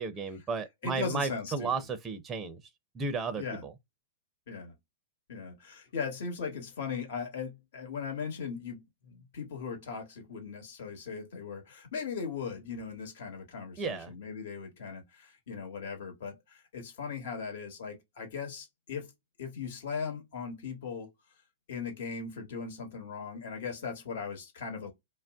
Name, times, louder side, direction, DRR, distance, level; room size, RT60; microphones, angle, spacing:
voice 1, 0.0-2.6 2.9-3.7 13.8-14.1, right 4 dB, 20° right, 0.5 m, -34 dB
voice 2, 0.8-1.7 3.4-3.6 4.5-4.7 5.3-19.1 19.4-21.1 21.7-24.9, left 5 dB, 65° left, 1.2 m, -38 dB
2.5 x 2.0 x 3.5 m
hypercardioid pair, 120°, 0 cm